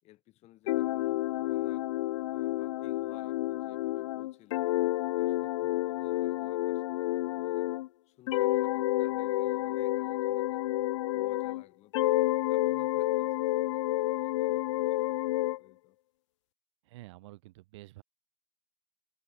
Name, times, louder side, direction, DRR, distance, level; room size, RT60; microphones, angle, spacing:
voice 1, 0.0-1.9 2.3-4.8 5.1-7.7 8.1-10.6 11.1-12.2 12.5-16.0, left 17 dB, 45° left, 5.2 m, -59 dB
sound 1, 0.7-7.9 8.3-11.6 11.9-15.6, left 17 dB, 85° left, 0.5 m, -30 dB
voice 2, 16.8-18.0, right 19 dB, 75° right, 6.6 m, -49 dB
supercardioid pair, 125°, 15 cm